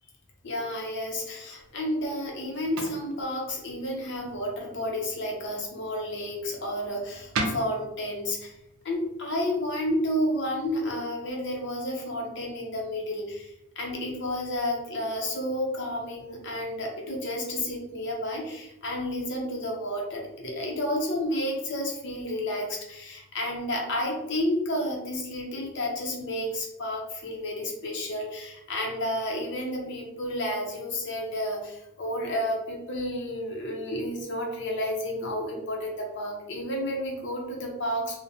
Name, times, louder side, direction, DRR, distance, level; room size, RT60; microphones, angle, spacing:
voice 1, 0.4-8.6 8.8-38.2, left 1 dB, 55° left, 0 dB, 0.6 m, -31 dB
sound 1, 1.6-10.7, right 2 dB, 80° right, 0.4 m, -40 dB
2.5 x 2.1 x 2.7 m, 0.86 s
head